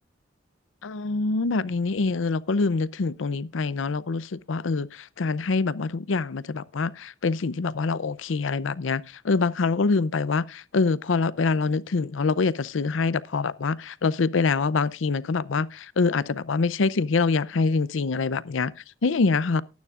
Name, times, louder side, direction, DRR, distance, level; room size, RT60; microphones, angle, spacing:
voice 1, 0.8-19.6, left 4 dB, 80° left, 0.6 m, -25 dB
19.0 x 9.5 x 2.4 m
head